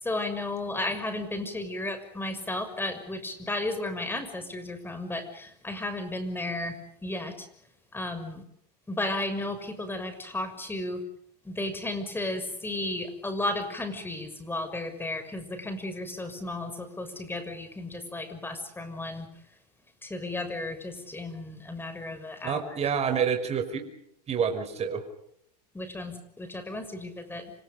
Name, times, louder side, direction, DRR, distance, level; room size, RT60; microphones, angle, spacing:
voice 1, 0.0-7.5 7.9-8.4 8.9-11.0 11.4-19.3 20.0-22.6 25.7-27.5, left 2 dB, 10° left, 10 dB, 6.3 m, -34 dB
voice 2, 22.4-23.8 24.3-25.0, right 7 dB, 30° right, 6 dB, 5.5 m, -28 dB
29.5 x 27.0 x 5.3 m, 0.71 s
hypercardioid pair, 105°, 21 cm